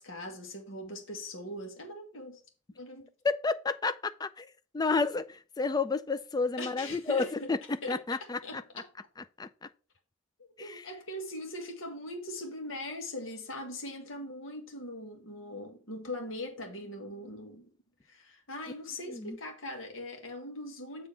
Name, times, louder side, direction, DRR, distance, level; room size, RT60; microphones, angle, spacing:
voice 1, 0.0-2.4 2.8-3.1 6.6-7.5 7.8-8.0 8.4-8.8 10.4-17.7 18.1-21.1, left 1 dB, 70° left, 1.9 m, -41 dB
voice 2, 3.2-8.6 9.4-9.7 10.6-10.8 19.1-19.4, left 4 dB, 20° left, 0.4 m, -31 dB
7.3 x 3.4 x 5.7 m
head